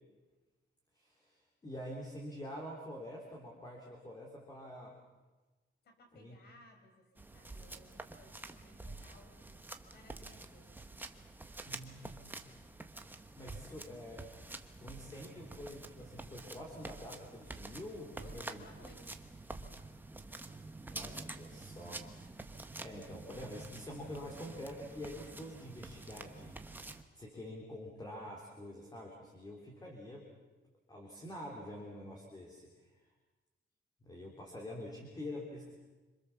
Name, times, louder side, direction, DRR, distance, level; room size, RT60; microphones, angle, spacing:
voice 1, 0.9-4.9 6.1-6.4 11.6-12.4 13.4-14.2 14.8-18.6 20.9-22.1 22.8-30.3 30.9-33.1 34.0-35.7, left 1 dB, 20° left, -1 dB, 3.3 m, -47 dB
voice 2, 5.8-10.8 13.6-14.0 18.2-19.2, left 2 dB, 50° left, 5 dB, 5.1 m, -61 dB
sound 1, 7.2-27.0, right 2 dB, 10° right, 1.1 m, -48 dB
27.0 x 25.5 x 7.1 m, 1.2 s
cardioid pair, 180°, 21 cm